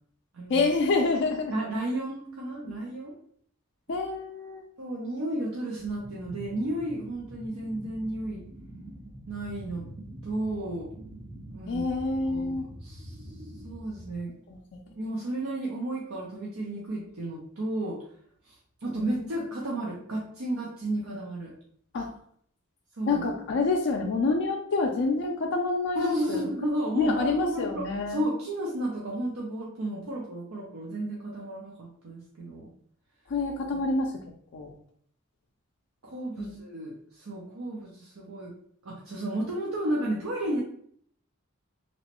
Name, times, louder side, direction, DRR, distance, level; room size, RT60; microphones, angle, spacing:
voice 1, 0.5-1.5 2.7-2.8 3.9-4.6 11.7-12.7 14.5-14.6 18.9-19.3 21.9-22.1 23.1-26.4 27.0-28.2 33.3-34.1 34.5-34.7 36.4-36.6, left 3 dB, 60° left, 1 dB, 0.4 m, -27 dB
voice 2, 1.5-3.1 4.8-8.4 9.3-9.8 10.2-10.9 11.5-11.9 12.3-13.2 13.6-14.3 14.9-18.0 18.5-21.5 23.0-23.3 25.9-32.7 36.0-38.5 38.8-40.6, right 1 dB, 85° right, -4 dB, 0.7 m, -32 dB
sound 1, 5.7-14.2, right 1 dB, 30° right, 0.5 m, -45 dB
3.0 x 3.0 x 2.9 m, 0.63 s
head